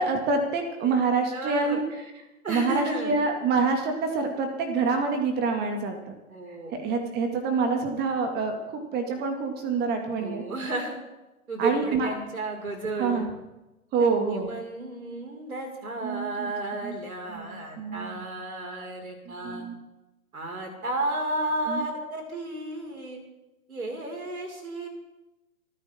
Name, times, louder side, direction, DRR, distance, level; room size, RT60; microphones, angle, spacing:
voice 1, 0.0-1.8 2.5-6.1 6.7-10.4 11.6-12.1 13.0-13.3 13.9-14.5 16.0-16.5 16.8-17.0 17.3-18.2 19.4-19.7 21.7-21.9, right 4 dB, 25° right, 4 dB, 2.2 m, -26 dB
voice 2, 1.3-1.8 2.4-3.1 6.3-6.7 10.2-11.0 11.5-13.2 14.0-19.6 20.3-23.2 23.7-24.9, right 2 dB, 80° right, 2 dB, 5.3 m, -33 dB
29.5 x 10.0 x 3.7 m, 0.99 s
figure-of-eight pair, 125°, 42 cm